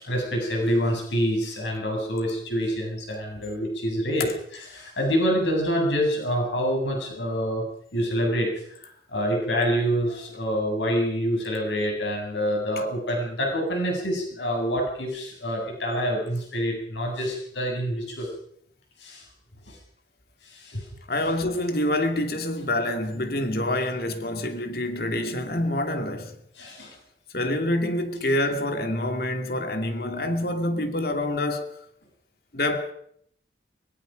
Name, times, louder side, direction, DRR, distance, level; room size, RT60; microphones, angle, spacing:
voice 1, 0.0-7.6 7.9-8.5 9.1-18.3 19.0-19.3 19.7-19.8 20.4-20.9 26.6-26.9, equal, 80° left, 8.0 m, -26 dB
voice 2, 21.1-26.4 27.3-31.8 32.5-32.9, left 1 dB, 55° left, 2.5 m, -27 dB
23.0 x 22.5 x 5.2 m
head